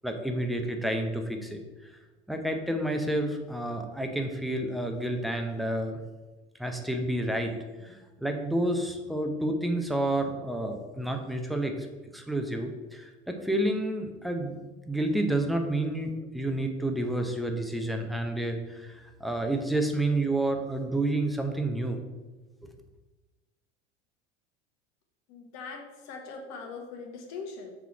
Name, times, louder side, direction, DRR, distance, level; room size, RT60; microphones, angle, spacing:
voice 1, 0.0-1.6 1.9-2.0 2.3-6.0 6.6-11.9 12.1-14.5 14.9-22.0, right 1 dB, ahead, 4 dB, 0.7 m, -30 dB
voice 2, 25.3-27.7, left 4 dB, 45° left, 3 dB, 1.3 m, -41 dB
4.6 x 3.9 x 5.7 m, 1.2 s
figure-of-eight pair, 75°, 37 cm